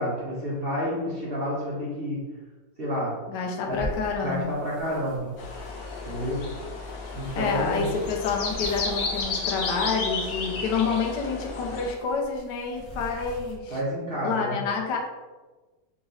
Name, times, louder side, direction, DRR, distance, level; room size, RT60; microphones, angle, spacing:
voice 1, 0.0-2.3 2.8-3.2 3.6-3.8 4.2-5.3 6.0-6.4 7.1-7.9 13.7-14.6, equal, 40° right, -6 dB, 1.1 m, -29 dB
voice 2, 3.3-4.6 7.4-13.8 14.2-15.0, left 5 dB, 80° left, 1 dB, 1.3 m, -28 dB
sound 1, 3.7-13.5, equal, 25° left, 1.3 m, -43 dB
sound 2, 5.4-11.9, left 3 dB, 65° left, 1.2 m, -33 dB
3.8 x 3.0 x 3.8 m, 1.2 s
omnidirectional pair, 1.9 m